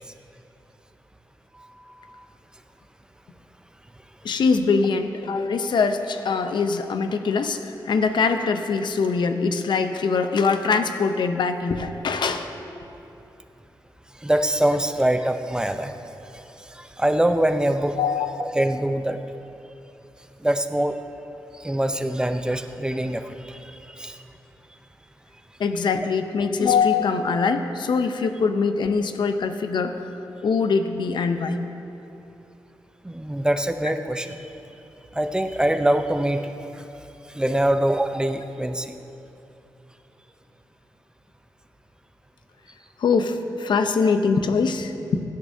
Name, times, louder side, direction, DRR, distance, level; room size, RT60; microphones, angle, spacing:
voice 1, 1.6-2.3 14.2-15.9 16.3-16.4 16.7-18.0 18.4-19.2 20.4-21.0 21.6-24.2 33.0-34.5 35.1-36.5 36.7-36.8 37.3-39.0, right 1 dB, 10° right, 8 dB, 0.6 m, -24 dB
voice 2, 4.2-12.5 18.0-18.6 25.6-30.1 30.4-31.6 43.0-45.2, left 5 dB, 75° left, 8 dB, 0.7 m, -23 dB
16.5 x 10.5 x 2.7 m, 2.8 s
cardioid pair, 75°, 8 cm